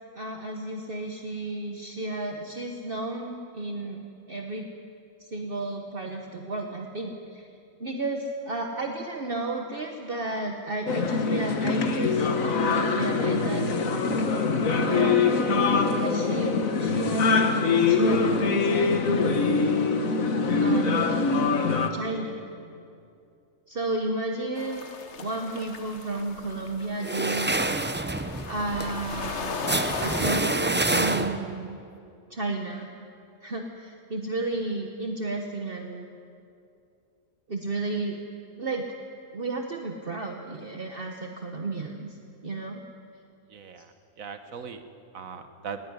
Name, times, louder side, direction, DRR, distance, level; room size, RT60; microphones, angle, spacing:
voice 1, 0.1-4.7 5.3-7.5 7.8-14.1 14.6-20.2 20.6-21.3 21.9-22.4 23.7-24.9 25.2-28.2 28.5-31.8 32.3-32.9 33.4-36.1 37.5-38.2 38.6-38.9 39.3-42.2 42.4-42.8, right 2 dB, 45° right, 2 dB, 1.4 m, -33 dB
sound 1, 10.9-21.9, left 4 dB, 85° left, 1.7 m, -23 dB
sound 2, 24.6-30.4, left 5 dB, 60° left, 1.4 m, -37 dB
sound 3, 27.0-31.6, right 2 dB, 20° right, 0.3 m, -27 dB
voice 2, 43.5-44.8 45.1-45.8, right 6 dB, 90° right, 8 dB, 1.6 m, -40 dB
19.5 x 17.5 x 9.7 m, 2.5 s
omnidirectional pair, 1.4 m